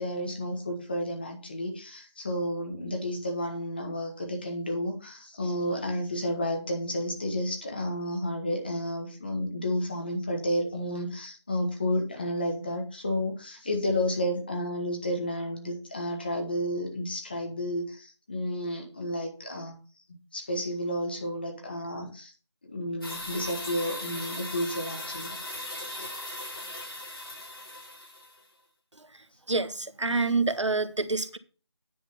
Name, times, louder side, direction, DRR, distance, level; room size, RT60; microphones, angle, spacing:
voice 1, 0.0-19.8 20.3-22.3 22.7-25.3, left 1 dB, 20° left, 1.4 m, -31 dB
sound 1, 23.0-28.4, left 1 dB, 50° left, 4.2 m, -38 dB
voice 2, 29.5-31.4, right 3 dB, 90° right, 1.3 m, -27 dB
10.0 x 3.9 x 6.9 m
figure-of-eight pair, 175°, 15 cm